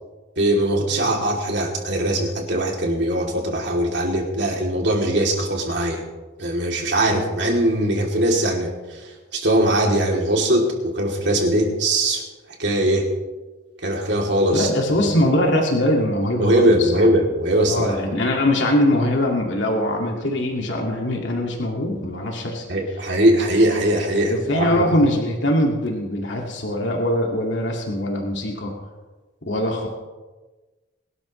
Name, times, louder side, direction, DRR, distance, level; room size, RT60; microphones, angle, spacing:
voice 1, 0.4-6.0 6.4-12.2 12.6-13.1 13.8-14.7 16.4-18.0 22.7-24.8, right 1 dB, 65° right, 0 dB, 2.9 m, -21 dB
voice 2, 14.5-17.1 17.7-22.6 24.3-28.7 29.4-29.9, left 1 dB, 75° left, 0 dB, 2.1 m, -22 dB
22.5 x 12.5 x 3.2 m, 1.2 s
head